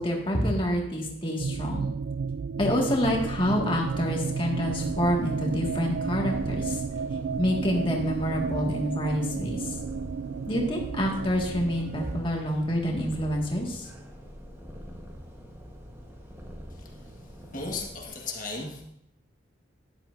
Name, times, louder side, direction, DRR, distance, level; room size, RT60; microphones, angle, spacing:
voice 1, 0.0-1.9 2.6-6.8 7.4-9.8 10.5-13.9, equal, 30° left, 0 dB, 1.9 m, -27 dB
sound 1, 1.4-12.2, right 5 dB, 75° right, 0.3 m, -32 dB
Purr, 2.6-18.0, equal, 15° right, 1.3 m, -44 dB
voice 2, 16.7-18.8, left 3 dB, 45° left, 0 dB, 1.7 m, -37 dB
13.5 x 10.5 x 2.7 m, 0.77 s
head